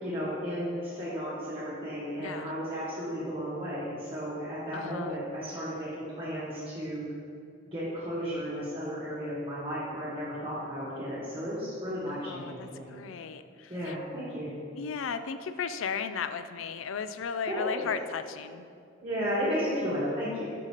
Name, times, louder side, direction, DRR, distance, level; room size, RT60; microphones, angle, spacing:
voice 1, 0.0-7.0 7.6-12.9 13.7-14.5 17.5-17.9 19.0-20.5, equal, 25° right, -11 dB, 1.6 m, -34 dB
voice 2, 2.2-2.5 4.7-5.1 12.1-14.0 14.8-18.7, left 6 dB, 80° left, 11 dB, 0.4 m, -35 dB
6.4 x 5.7 x 4.9 m, 2.4 s
head